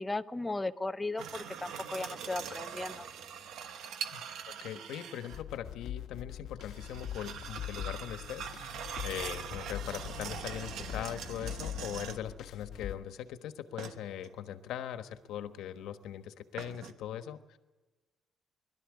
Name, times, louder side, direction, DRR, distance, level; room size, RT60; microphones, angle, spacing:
voice 1, 0.0-3.1, left 2 dB, 10° left, 11 dB, 0.6 m, -36 dB
sound 1, 1.2-5.4 6.6-12.4 13.8-14.4 16.6-16.9, right 7 dB, 70° right, 1.2 m, -43 dB
voice 2, 4.6-8.8 9.0-17.6, left 10 dB, 85° left, 9 dB, 1.3 m, -41 dB
sound 2, 5.3-13.0, left 11 dB, 65° left, 1.1 m, -42 dB
21.5 x 12.5 x 9.7 m, 1.2 s
cardioid pair, 175°, 0 cm